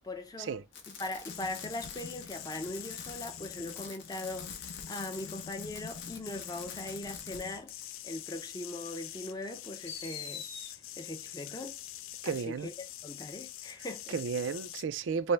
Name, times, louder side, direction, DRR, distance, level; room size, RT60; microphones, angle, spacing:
voice 1, 0.0-0.6 1.0-7.7 8.0-11.8 12.2-12.7 13.0-14.2, left 2 dB, 20° left, 0.6 m, -40 dB
Fireworks, 0.7-7.4 7.7-7.8 8.9-9.0 9.9-10.7 12.4-12.5, left 6 dB, 70° left, 1.0 m, -46 dB
sound 1, 1.3-14.8, left 10 dB, 90° left, 0.4 m, -45 dB
voice 2, 12.2-12.7 14.1-15.3, right 5 dB, 70° right, 0.4 m, -32 dB
5.3 x 2.1 x 3.2 m
head